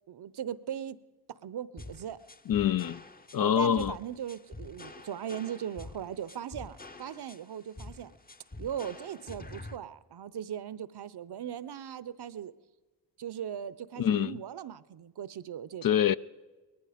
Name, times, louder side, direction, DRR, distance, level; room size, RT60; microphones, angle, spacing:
voice 1, 0.1-1.0 1.4-2.2 3.4-8.1 8.6-12.5 13.2-16.0, right 9 dB, 60° right, 0.7 m, -39 dB
sound 1, 1.8-9.8, left 2 dB, 20° left, 0.8 m, -47 dB
voice 2, 2.5-3.0 3.3-3.9 14.0-14.4 15.8-16.2, left 9 dB, 50° left, 0.5 m, -25 dB
18.5 x 14.0 x 5.0 m
supercardioid pair, 40°, 45 cm